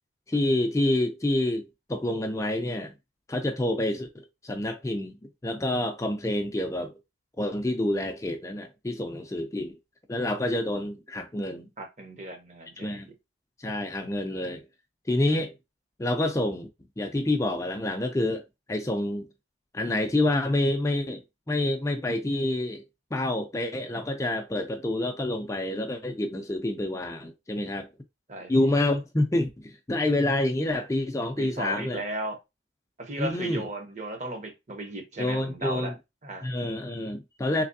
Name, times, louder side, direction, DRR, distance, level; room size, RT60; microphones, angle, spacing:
voice 1, 0.3-2.9 3.3-4.1 4.4-6.9 7.4-9.8 10.1-11.7 12.8-13.1 13.6-14.6 15.1-15.5 16.0-16.7 17.0-18.4 18.7-19.3 19.7-21.2 21.5-22.8 23.1-27.9 28.5-32.0 33.2-33.7 35.2-35.9 36.4-37.6, left 1 dB, 15° left, 0.4 m, -27 dB
voice 2, 11.8-13.0 28.3-28.7 31.4-32.4 33.0-35.9 36.2-36.5, right 1 dB, 40° right, 0.8 m, -35 dB
3.3 x 3.3 x 2.6 m
head